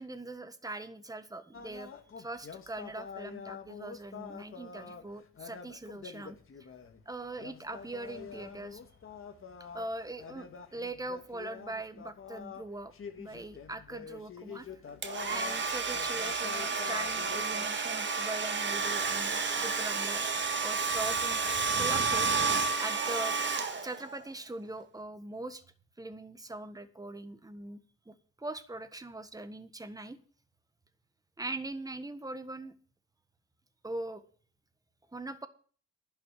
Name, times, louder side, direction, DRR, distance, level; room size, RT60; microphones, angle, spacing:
voice 1, 0.0-6.4 7.0-8.8 9.7-14.7 15.3-20.3 20.6-22.3 22.8-23.4 23.8-25.6 26.0-27.8 28.1-30.2 31.4-32.7 33.8-34.2 35.1-35.5, right 2 dB, 10° right, 11 dB, 1.5 m, -41 dB
sound 1, 1.5-17.7, left 6 dB, 45° left, 2.1 m, -46 dB
Domestic sounds home sounds, 15.0-24.2, right 4 dB, 40° right, 1.9 m, -31 dB
11.5 x 6.3 x 9.1 m, 0.42 s
cardioid pair, 90°, 30 cm